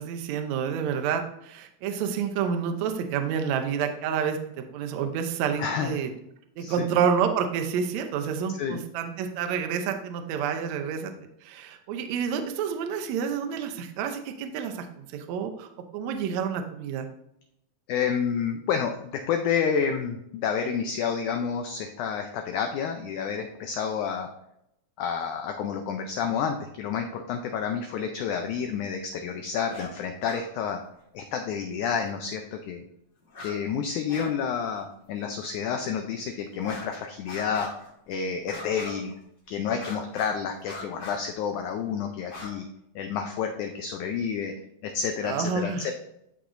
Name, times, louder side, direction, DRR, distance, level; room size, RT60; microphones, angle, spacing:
voice 1, 0.0-6.1 6.6-11.1 11.4-17.1 45.2-45.8, right 7 dB, 85° right, 5 dB, 1.5 m, -29 dB
voice 2, 5.6-6.0 6.6-6.9 8.6-8.8 17.9-24.3 25.0-30.8 31.1-32.9 33.4-37.7 38.1-39.1 39.5-42.7 42.9-44.5 44.8-45.9, left 7 dB, 85° left, 4 dB, 1.7 m, -29 dB
sound 1, 29.7-29.9 30.2-30.4 32.1-32.2 33.3-33.6 33.8-34.3 34.6-34.8 35.4-35.5 36.6-36.9 37.3-37.9 38.5-39.2 39.7-40.4 40.6-41.2 42.2-42.5, left 2 dB, 45° left, 2.5 m, -41 dB
13.0 x 4.9 x 2.6 m, 0.80 s
omnidirectional pair, 4.2 m